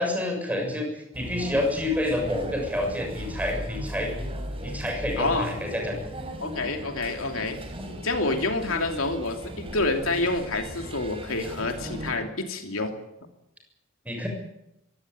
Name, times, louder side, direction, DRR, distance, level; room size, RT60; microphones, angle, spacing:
voice 1, 0.0-4.1 4.6-6.0 14.1-14.3, left 1 dB, 5° right, 2 dB, 7.0 m, -28 dB
sound 1, 1.1-12.1, equal, 25° right, 5.0 m, -37 dB
voice 2, 5.2-5.5 6.4-7.6 8.0-12.9, left 2 dB, 75° left, 5 dB, 2.9 m, -28 dB
22.5 x 18.0 x 9.7 m, 0.86 s
head